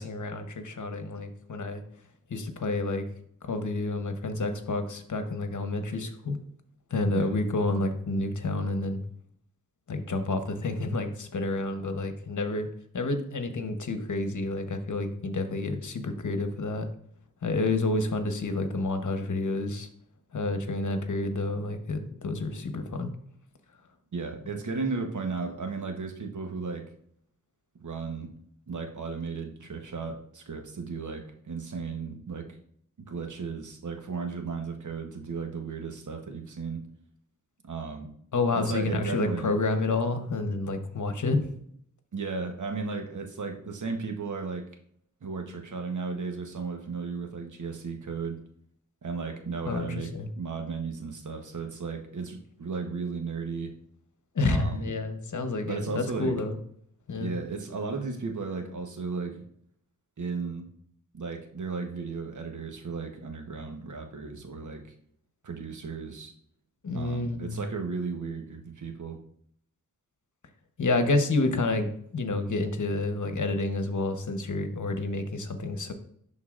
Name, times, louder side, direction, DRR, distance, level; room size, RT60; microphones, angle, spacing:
voice 1, 0.0-1.8 2.3-3.1 3.4-6.4 6.9-9.0 9.9-12.7 12.9-16.9 17.4-19.9 20.3-23.1 38.3-41.5 49.7-50.3 54.3-56.6 57.1-57.3 66.8-67.6 70.8-75.9, left 2 dB, 60° left, 7 dB, 1.1 m, -29 dB
voice 2, 24.1-26.9 27.8-28.3 28.7-32.5 33.0-36.8 37.7-38.1 38.5-39.5 42.1-44.7 45.2-48.4 49.0-50.1 50.4-53.7 54.4-54.9 55.7-56.4 57.2-59.4 60.2-60.7 61.1-64.9 65.4-66.3 66.9-69.2, right 4 dB, 60° right, 4 dB, 1.1 m, -35 dB
11.5 x 3.9 x 2.5 m, 0.66 s
cardioid pair, 50°, 34 cm